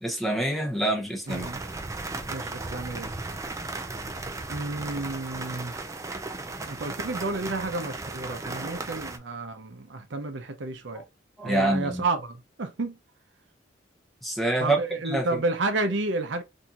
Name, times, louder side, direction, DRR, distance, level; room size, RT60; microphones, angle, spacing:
voice 1, 0.0-1.5 11.4-12.0 14.2-14.8 15.0-15.3, right 1 dB, ahead, 0.9 m, -26 dB
sound 1, 1.3-9.2, right 3 dB, 15° right, 0.4 m, -36 dB
voice 2, 1.3-1.6 2.3-3.1 4.5-5.7 6.7-11.0 11.4-13.0 14.6-16.4, right 2 dB, 70° right, 0.6 m, -31 dB
4.3 x 2.7 x 2.3 m
head